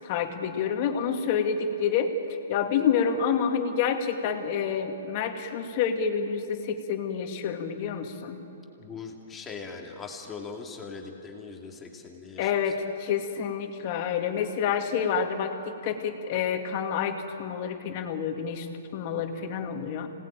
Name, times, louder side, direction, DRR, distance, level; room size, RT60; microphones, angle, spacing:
voice 1, 0.0-2.1 2.5-8.4 12.4-18.7 18.9-20.1, left 7 dB, 40° left, 4 dB, 2.3 m, -28 dB
voice 2, 8.8-12.7, left 4 dB, 15° left, 1 dB, 2.4 m, -41 dB
26.5 x 18.5 x 9.0 m, 2.9 s
hypercardioid pair, 155°, 0 cm